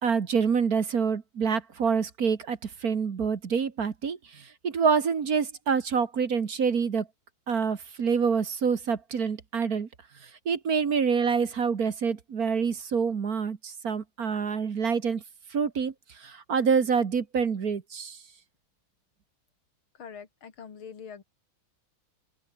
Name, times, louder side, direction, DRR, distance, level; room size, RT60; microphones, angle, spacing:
voice 1, 0.0-7.1 7.5-9.9 10.4-15.2 15.5-18.2, right 6 dB, 50° right, 1.9 m, -27 dB
voice 2, 19.9-21.2, left 6 dB, 90° left, 3.1 m, -44 dB
omnidirectional pair, 2.2 m